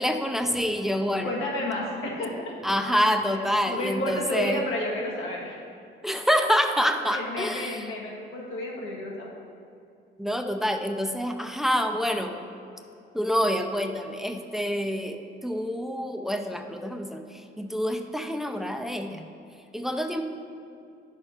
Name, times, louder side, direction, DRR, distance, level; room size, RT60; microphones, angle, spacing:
voice 1, 0.0-1.3 2.6-4.6 6.0-7.8 10.2-12.4 13.1-19.3 19.7-20.2, equal, ahead, 5 dB, 0.6 m, -27 dB
voice 2, 1.2-2.5 3.3-3.4 3.7-5.6 7.1-9.3, left 1 dB, 80° left, -3 dB, 1.8 m, -31 dB
10.0 x 6.5 x 4.4 m, 2.5 s
cardioid pair, 90°, 20 cm